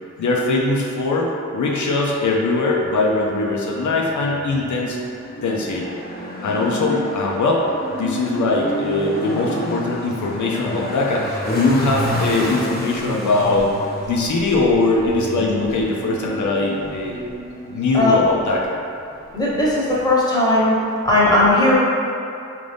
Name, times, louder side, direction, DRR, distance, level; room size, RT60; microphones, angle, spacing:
voice 1, 0.2-5.0 5.4-5.9 6.4-13.7 14.1-17.2 17.7-18.8, left 2 dB, 85° left, -2 dB, 0.5 m, -21 dB
sound 1, 3.0-19.6, left 1 dB, 30° left, 0.7 m, -30 dB
voice 2, 17.9-18.3 19.3-20.7 21.0-21.8, left 1 dB, 15° left, -7 dB, 1.1 m, -17 dB
3.8 x 2.5 x 3.4 m, 2.6 s
cardioid pair, 50°, 29 cm